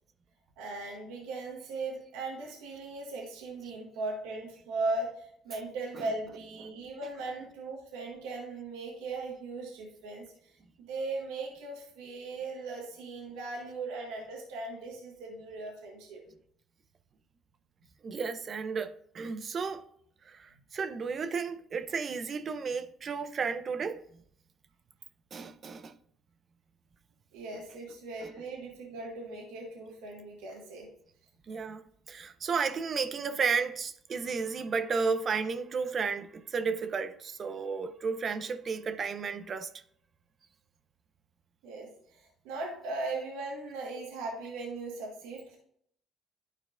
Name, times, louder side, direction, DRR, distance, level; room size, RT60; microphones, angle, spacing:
voice 1, 0.6-16.2 20.5-20.6 27.3-30.9 41.6-45.6, right 3 dB, 85° right, 1.5 m, -38 dB
voice 2, 18.0-19.9 20.3-24.0 25.3-25.9 27.5-27.6 28.2-28.3 31.5-31.8 32.1-39.7, right 5 dB, 45° right, 0.7 m, -33 dB
11.5 x 4.5 x 2.5 m
supercardioid pair, 65°, 0 cm